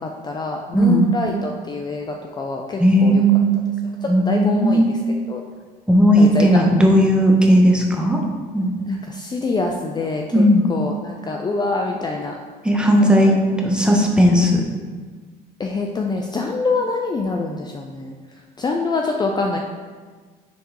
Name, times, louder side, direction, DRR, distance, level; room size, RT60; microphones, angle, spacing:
voice 1, 0.0-3.2 4.2-5.0 5.3-5.4 6.1-6.6 8.8-12.4 12.9-13.4 15.6-18.1 18.6-19.6, left 3 dB, 25° left, 1 dB, 0.5 m, -25 dB
voice 2, 0.7-1.1 2.8-3.7 4.1-5.1 5.9-8.2 8.5-8.7 10.3-10.7 12.6-13.3 13.6-14.6, equal, 5° right, 0 dB, 1.0 m, -15 dB
10.0 x 3.5 x 3.0 m, 1.5 s
cardioid pair, 110°, 17 cm